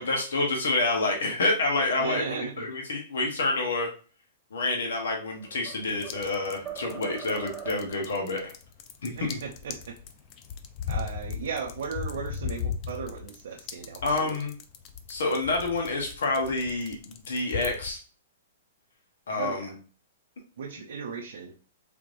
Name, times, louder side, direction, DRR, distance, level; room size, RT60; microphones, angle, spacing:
voice 1, 0.0-3.9 4.5-8.5 9.0-9.4 14.0-14.5 15.1-18.0 19.3-19.7, left 2 dB, 80° left, 1 dB, 1.0 m, -28 dB
voice 2, 2.0-2.7 9.1-10.0 10.9-14.4 19.4-19.7 20.6-21.5, right 6 dB, 70° right, 1 dB, 0.5 m, -36 dB
sound 1, 5.2-6.3 6.7-8.1, right 8 dB, 20° right, 0.8 m, -41 dB
sound 2, 5.9-17.9, left 7 dB, 35° left, 0.4 m, -37 dB
3.4 x 3.2 x 2.5 m, 0.38 s
hypercardioid pair, 135°, 0 cm